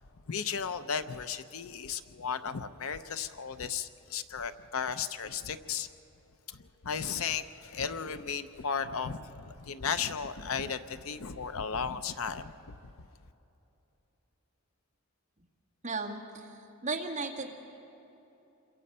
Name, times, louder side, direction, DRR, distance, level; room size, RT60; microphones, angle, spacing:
voice 1, 0.3-5.9 6.5-12.9, left 6 dB, 75° left, 11 dB, 0.7 m, -35 dB
voice 2, 15.8-16.6 16.8-17.5, right 3 dB, 35° right, -1 dB, 2.0 m, -35 dB
27.5 x 22.5 x 5.6 m, 3.0 s
head